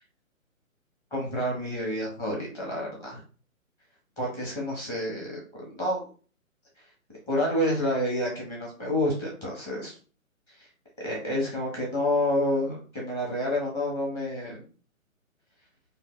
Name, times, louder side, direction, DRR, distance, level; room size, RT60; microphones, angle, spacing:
voice 1, 1.1-3.2 4.2-6.1 7.3-9.9 10.6-10.7 11.0-14.6, left 1 dB, 10° left, -3 dB, 0.7 m, -29 dB
3.2 x 2.6 x 2.4 m, 0.38 s
figure-of-eight pair, 135°, 41 cm